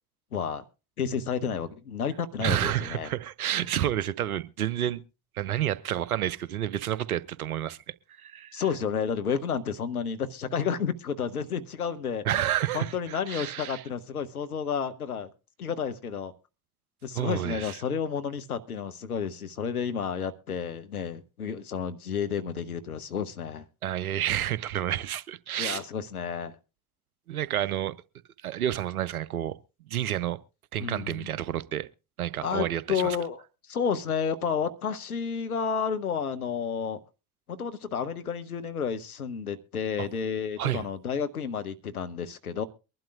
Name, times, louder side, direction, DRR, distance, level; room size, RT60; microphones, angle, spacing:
voice 1, 0.3-0.6 1.0-3.1 8.5-12.4 12.7-15.3 15.6-16.3 17.0-23.7 25.6-26.6 30.8-31.4 32.4-37.0 37.5-42.6, left 6 dB, 85° left, 0.7 m, -31 dB
voice 2, 2.4-5.0 5.4-7.8 8.2-8.6 12.2-13.8 17.1-17.8 23.8-25.8 27.3-28.0 28.4-29.6 29.9-30.4 30.7-31.9 32.2-33.2 40.0-40.1 40.6-40.8, right 12 dB, 85° right, 0.6 m, -30 dB
23.5 x 11.5 x 2.4 m
figure-of-eight pair, 50°, 43 cm